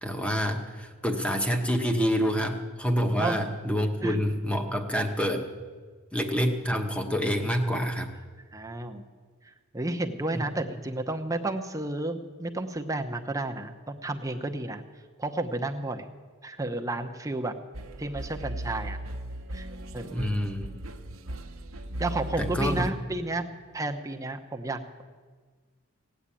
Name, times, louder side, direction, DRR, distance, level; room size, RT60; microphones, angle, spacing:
voice 1, 0.0-5.4 6.1-8.1 10.3-10.5 20.1-20.7 22.4-22.8, equal, 5° left, 4 dB, 1.1 m, -27 dB
voice 2, 8.5-9.0 9.7-14.8 15.2-16.1 16.4-17.5 18.0-19.0 19.5-19.7 19.9-20.5 22.0-23.5 23.7-25.0, right 2 dB, 15° right, 4 dB, 0.8 m, -32 dB
sound 1, 17.7-22.9, right 1 dB, 65° right, 0.9 m, -37 dB
17.5 x 8.9 x 8.5 m, 1.5 s
head